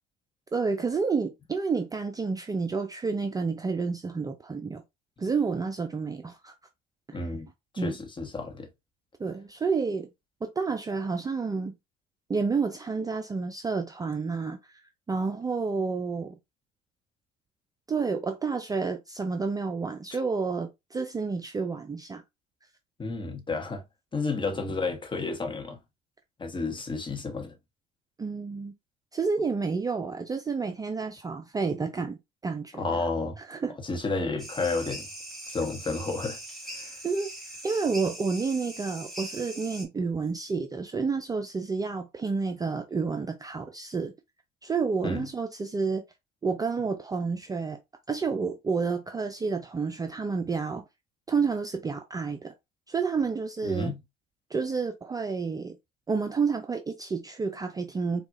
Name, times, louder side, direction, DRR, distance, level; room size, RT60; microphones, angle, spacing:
voice 1, 0.5-4.8 5.2-6.5 7.1-7.3 7.8-7.9 9.2-10.1 10.4-11.8 12.3-14.7 15.1-16.4 17.9-22.2 28.2-28.7 29.1-33.1 33.4-33.8 37.0-37.3 37.6-44.1 44.6-46.0 46.4-47.8 48.1-50.8 51.3-52.5 52.9-54.0 54.5-55.8 56.1-58.3, right 4 dB, 20° right, 0.5 m, -30 dB
voice 2, 7.1-7.5 7.7-8.7 23.0-23.8 24.1-25.8 26.4-27.5 32.8-33.4 33.8-35.1 35.5-36.4 36.7-37.0 45.0-45.3 53.6-54.0, left 3 dB, 25° left, 1.1 m, -31 dB
sound 1, 34.4-39.9, right 1 dB, ahead, 1.7 m, -41 dB
4.4 x 2.3 x 2.5 m
hypercardioid pair, 70°, 21 cm